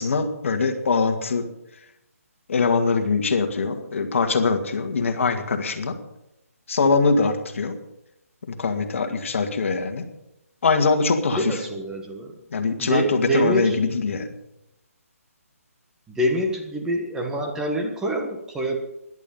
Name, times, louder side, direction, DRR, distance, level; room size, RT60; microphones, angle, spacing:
voice 1, 0.0-1.5 2.5-6.0 6.7-7.8 8.5-10.0 10.6-11.6 12.5-14.3, left 4 dB, 55° left, 7 dB, 2.0 m, -22 dB
voice 2, 11.3-12.3 12.8-13.7 16.1-18.8, right 1 dB, 5° right, 1 dB, 1.4 m, -26 dB
17.0 x 11.5 x 5.6 m, 0.86 s
hypercardioid pair, 160°, 8 cm